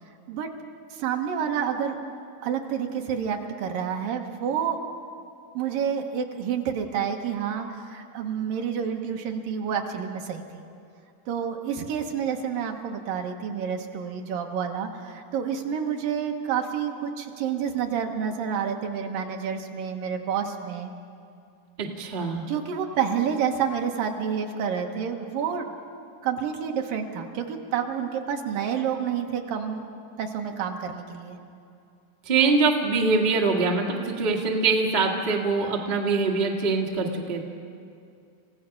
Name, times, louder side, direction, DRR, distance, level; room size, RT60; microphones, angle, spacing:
voice 1, 0.9-2.0 2.4-4.8 5.5-10.4 11.3-20.9 22.5-25.7 26.2-29.8 30.2-31.4, right 7 dB, 75° right, 4 dB, 2.8 m, -29 dB
voice 2, 21.8-22.4 32.2-37.4, right 4 dB, 55° right, 0 dB, 0.5 m, -23 dB
27.5 x 16.0 x 5.9 m, 2.4 s
omnidirectional pair, 4.2 m